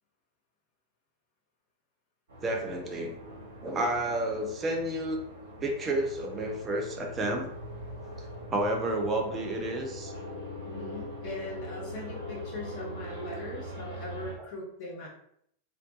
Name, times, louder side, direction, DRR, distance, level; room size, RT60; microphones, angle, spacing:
sound 1, 2.3-14.3, equal, 65° right, 0.9 m, -41 dB
voice 1, 2.4-3.2 3.6-5.2 5.6-7.5 8.2-10.1 14.4-14.5, right 1 dB, 20° right, 2 dB, 0.5 m, -31 dB
voice 2, 10.7-15.1, left 2 dB, 45° left, -2 dB, 0.9 m, -40 dB
2.5 x 2.1 x 2.7 m, 0.69 s
figure-of-eight pair, 90°, 0 cm